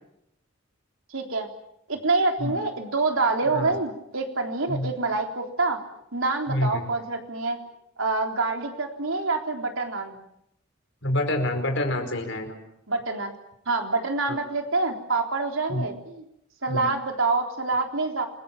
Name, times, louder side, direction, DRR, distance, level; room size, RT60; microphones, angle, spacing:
voice 1, 1.1-1.5 1.9-5.8 6.1-7.6 8.0-10.2 12.9-13.3 13.7-16.2 16.6-18.3, right 3 dB, 75° right, 3 dB, 3.8 m, -26 dB
voice 2, 6.5-6.9 11.0-12.6 14.3-14.4 15.7-15.9 16.7-16.9, left 1 dB, 60° left, 5 dB, 5.1 m, -27 dB
28.5 x 22.0 x 7.4 m, 0.80 s
head